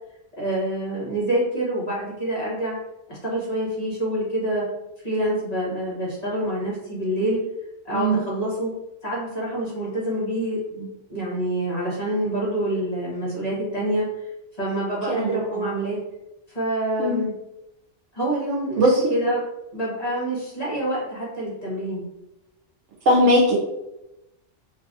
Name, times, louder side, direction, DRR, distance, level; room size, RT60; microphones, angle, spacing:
voice 1, 0.4-2.7 3.1-4.6 5.0-7.4 7.8-8.7 9.0-14.3 14.6-16.0 16.5-17.3 18.1-19.4 19.7-22.0, right 1 dB, 35° left, -7 dB, 1.0 m, -26 dB
voice 2, 7.9-8.2 15.1-15.7 17.0-17.2 18.8-19.1 23.1-23.5, equal, 75° right, -2 dB, 0.9 m, -19 dB
3.3 x 2.3 x 2.5 m, 0.91 s
omnidirectional pair, 1.3 m